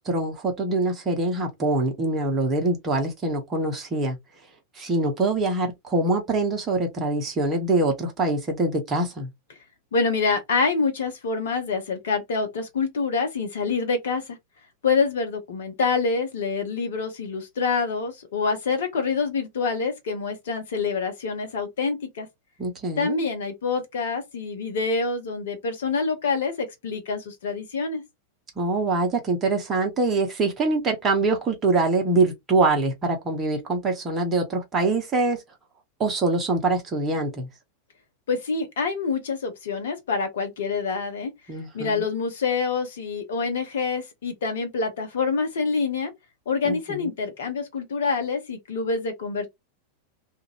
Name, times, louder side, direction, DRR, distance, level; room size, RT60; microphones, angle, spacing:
voice 1, 0.0-4.2 4.8-9.3 22.6-23.2 28.6-35.4 36.0-37.5 41.5-42.0 46.6-47.1, right 2 dB, 25° right, 1.0 m, -24 dB
voice 2, 9.9-14.4 14.8-22.3 23.0-28.0 38.3-41.3 41.7-46.1 46.5-49.5, left 4 dB, 60° left, 0.9 m, -26 dB
2.5 x 2.5 x 2.9 m
figure-of-eight pair, 90°, 0 cm